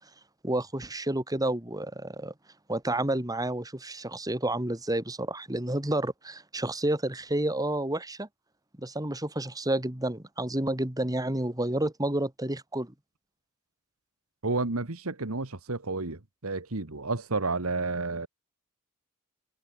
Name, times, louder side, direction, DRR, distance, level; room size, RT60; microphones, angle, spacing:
voice 1, 0.4-2.3 2.7-8.3 8.8-12.9, right 1 dB, 15° right, 2.6 m, -30 dB
voice 2, 14.4-18.3, right 3 dB, 80° right, 1.8 m, -31 dB
head